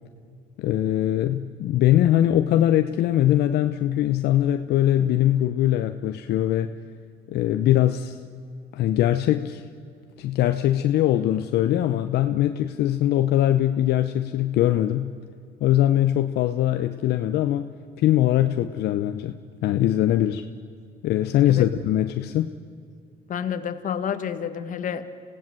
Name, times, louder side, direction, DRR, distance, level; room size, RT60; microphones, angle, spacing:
voice 1, 0.6-6.7 7.3-8.2 8.7-9.6 10.2-15.1 15.6-17.7 18.0-20.4 21.0-22.5, left 12 dB, 75° left, 8 dB, 0.9 m, -22 dB
voice 2, 23.3-25.2, left 8 dB, 50° left, 9 dB, 1.7 m, -29 dB
26.5 x 17.0 x 7.7 m, 2.3 s
cardioid pair, 110°, 17 cm